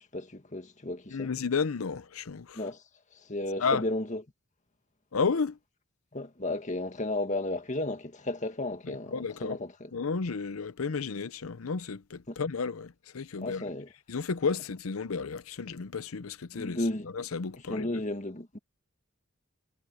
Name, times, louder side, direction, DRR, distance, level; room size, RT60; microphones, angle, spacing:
voice 1, 0.0-1.3 2.5-2.8 3.1-4.2 6.1-9.9 12.3-12.4 13.4-13.9 16.5-17.1 17.5-18.6, left 2 dB, 35° left, 1.9 m, -34 dB
voice 2, 1.1-2.6 3.6-3.8 5.1-5.6 8.9-9.6 9.9-13.6 14.1-16.8 17.2-17.9, left 5 dB, 85° left, 0.7 m, -32 dB
head